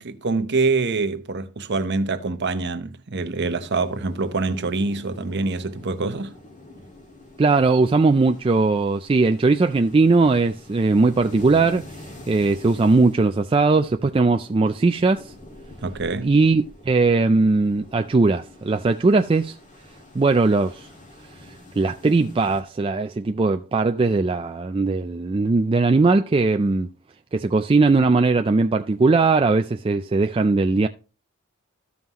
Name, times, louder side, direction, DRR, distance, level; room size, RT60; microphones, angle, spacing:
voice 1, 0.0-6.3 15.8-16.3, right 3 dB, 50° right, 0.8 m, -25 dB
sound 1, 3.3-22.6, left 1 dB, 35° left, 1.9 m, -45 dB
voice 2, 7.4-11.9 12.3-15.3 16.2-19.6 20.1-20.9 21.8-26.9 27.3-30.9, right 3 dB, 25° right, 0.3 m, -19 dB
14.0 x 5.5 x 2.9 m
head